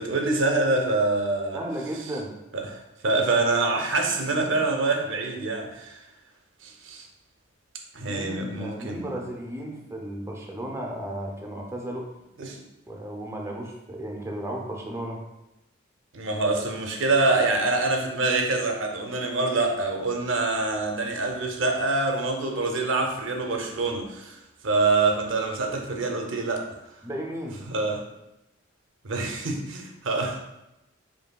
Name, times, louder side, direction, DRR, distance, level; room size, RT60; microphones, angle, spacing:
voice 1, 0.0-1.6 2.5-6.0 6.6-7.1 7.9-9.2 12.4-12.6 16.1-26.7 27.7-28.0 29.0-30.4, right 3 dB, 65° right, 3 dB, 0.6 m, -25 dB
voice 2, 1.5-2.3 8.0-12.1 12.9-15.2 27.0-27.6, right 1 dB, 15° right, 0 dB, 0.4 m, -34 dB
5.2 x 2.6 x 2.2 m, 0.93 s
head